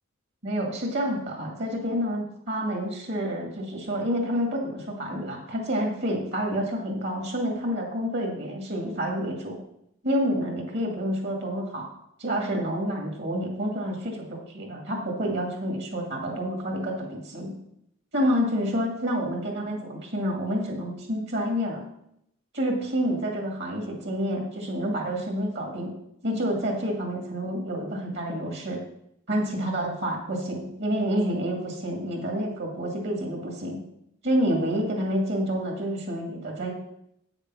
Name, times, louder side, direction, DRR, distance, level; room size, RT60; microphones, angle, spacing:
voice 1, 0.4-9.6 10.0-11.9 12.2-17.5 18.1-21.8 22.5-25.9 26.2-28.8 29.3-33.8 34.2-36.7, equal, 55° right, 1 dB, 2.1 m, -28 dB
8.2 x 6.6 x 6.1 m, 0.76 s
head